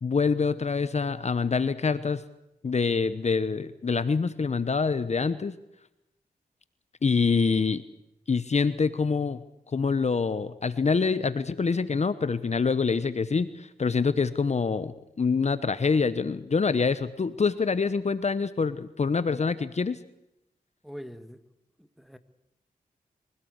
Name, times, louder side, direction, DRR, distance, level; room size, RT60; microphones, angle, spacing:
voice 1, 0.0-2.2 2.6-5.5 7.0-7.8 8.3-9.4 9.7-20.0, left 5 dB, 45° left, 1.0 m, -26 dB
voice 2, 20.8-21.4 21.8-22.2, equal, ahead, 1.8 m, -43 dB
24.5 x 17.5 x 8.1 m
cardioid pair, 60°, 15 cm